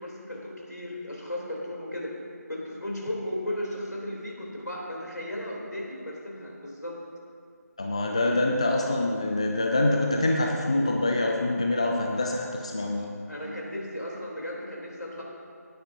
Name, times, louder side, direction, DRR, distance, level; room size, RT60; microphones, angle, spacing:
voice 1, 0.0-2.1 2.5-7.0 13.3-15.2, left 1 dB, 85° left, -3 dB, 3.3 m, -35 dB
voice 2, 7.8-13.1, left 2 dB, 20° left, 1 dB, 0.4 m, -25 dB
18.5 x 9.4 x 2.7 m, 2.2 s
figure-of-eight pair, 165°, 9 cm